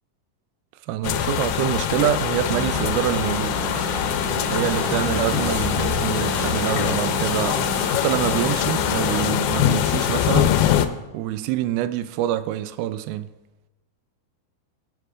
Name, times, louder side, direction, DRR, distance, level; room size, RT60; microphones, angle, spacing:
voice 1, 0.9-3.6 4.5-10.6 11.1-13.3, right 12 dB, 85° right, 2.4 m, -26 dB
sound 1, 1.0-10.9, left 10 dB, 80° left, 2.3 m, -23 dB
sound 2, 2.4-9.3, equal, 30° left, 3.9 m, -30 dB
21.5 x 7.7 x 2.5 m
omnidirectional pair, 4.4 m